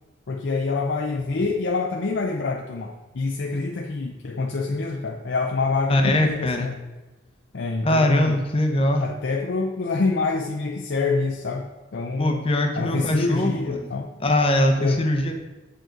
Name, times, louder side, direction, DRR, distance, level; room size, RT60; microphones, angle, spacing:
voice 1, 0.3-6.7 7.5-8.4 9.0-11.6 11.9-12.4 12.8-14.1 14.8-15.0, left 3 dB, 65° left, 0 dB, 0.5 m, -26 dB
voice 2, 5.9-6.7 7.8-9.0 12.2-13.9 14.2-15.3, left 1 dB, 30° left, 4 dB, 0.8 m, -22 dB
7.6 x 5.1 x 3.8 m, 1.2 s
head